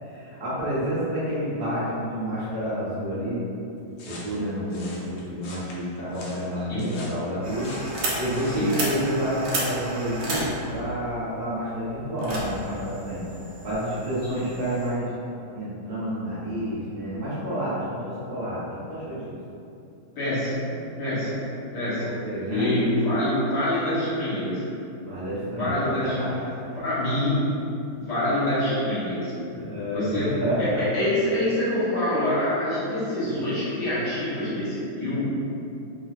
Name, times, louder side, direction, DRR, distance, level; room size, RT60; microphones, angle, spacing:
voice 1, 0.1-3.4 4.1-7.7 8.2-13.2 13.6-15.1 15.5-19.3 22.0-22.7 25.0-25.7 26.0-26.4 29.5-30.8, equal, 35° right, -11 dB, 1.0 m, -29 dB
sound 1, 4.0-8.7, left 2 dB, 85° left, 1.5 m, -43 dB
sound 2, 7.4-14.9, right 1 dB, 70° right, 1.2 m, -33 dB
voice 2, 20.2-20.7 21.0-21.5 21.7-22.0 22.5-24.7 25.6-26.1 26.8-27.4 28.0-29.4 29.9-30.7 30.9-35.3, left 1 dB, 55° left, -12 dB, 1.8 m, -26 dB
3.8 x 2.7 x 2.5 m, 2.7 s
omnidirectional pair, 2.3 m